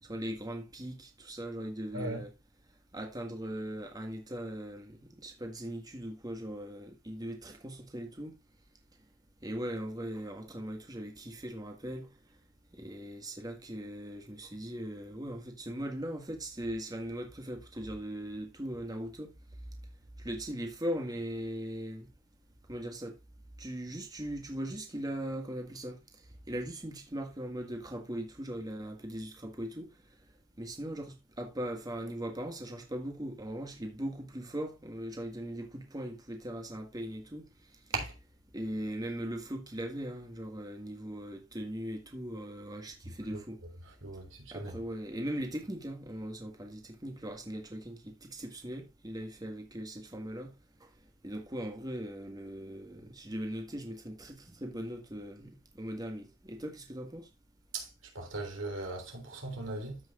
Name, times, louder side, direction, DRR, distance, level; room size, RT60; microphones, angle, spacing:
voice 1, 0.0-2.3 2.9-8.4 9.4-12.1 12.7-19.3 20.2-22.1 22.7-23.2 23.6-26.0 26.5-29.9 30.6-37.5 38.5-43.6 44.5-50.5 50.8-50.9 51.2-55.5 55.8-57.3, equal, 20° right, 1.8 m, -39 dB
voice 2, 1.9-2.3 37.9-38.1 43.0-44.8 57.7-57.9 58.2-60.0, right 2 dB, 70° right, 3.5 m, -39 dB
14.5 x 6.2 x 2.4 m
head